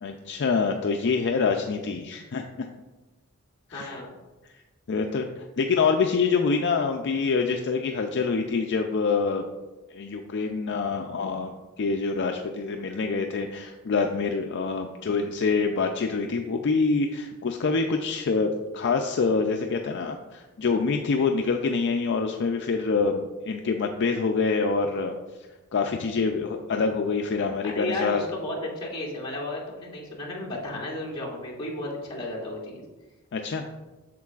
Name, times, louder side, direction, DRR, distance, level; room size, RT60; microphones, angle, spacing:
voice 1, 0.0-2.7 3.7-4.0 4.9-5.3 5.6-9.4 9.9-11.5 11.8-25.2 25.7-28.2 33.3-33.6, left 4 dB, 55° left, 4 dB, 0.4 m, -26 dB
voice 2, 3.7-4.1 27.6-32.8, left 1 dB, 25° left, -7 dB, 2.4 m, -33 dB
8.4 x 6.7 x 2.4 m, 1.1 s
head